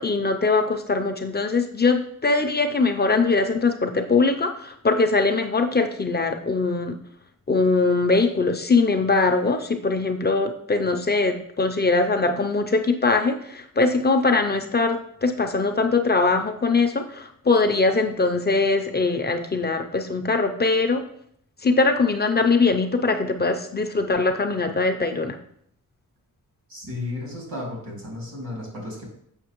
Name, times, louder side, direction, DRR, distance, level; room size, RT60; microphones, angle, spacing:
voice 1, 0.0-6.9 7.5-21.0 21.6-25.4, left 3 dB, 30° left, 5 dB, 0.4 m, -22 dB
voice 2, 26.7-29.1, left 2 dB, 90° right, -2 dB, 2.5 m, -33 dB
7.2 x 5.5 x 3.0 m, 0.68 s
wide cardioid pair, 180°, 33 cm